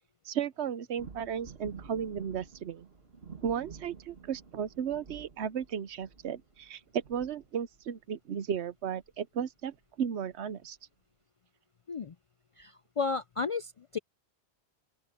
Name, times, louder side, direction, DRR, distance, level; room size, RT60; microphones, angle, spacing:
voice 1, 0.2-2.9 3.4-10.8, right 8 dB, 80° right, 1.1 m, -35 dB
sound 1, 1.0-8.0 9.0-9.1 9.4-9.7 10.3-10.4, right 5 dB, 65° right, 2.1 m, -50 dB
voice 2, 12.6-14.0, left 4 dB, 55° left, 0.4 m, -33 dB
open air
omnidirectional pair, 1.1 m